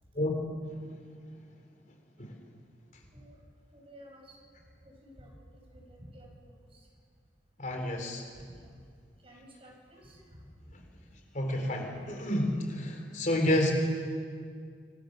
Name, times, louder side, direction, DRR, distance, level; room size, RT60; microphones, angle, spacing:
voice 1, 3.7-4.5 4.8-6.9 8.4-8.8 9.2-10.4 10.7-11.1, equal, 35° right, 0 dB, 6.4 m, -53 dB
voice 2, 7.6-8.3 11.3-13.7, left 1 dB, 45° left, 3 dB, 3.7 m, -29 dB
26.0 x 24.0 x 6.6 m, 2.1 s
head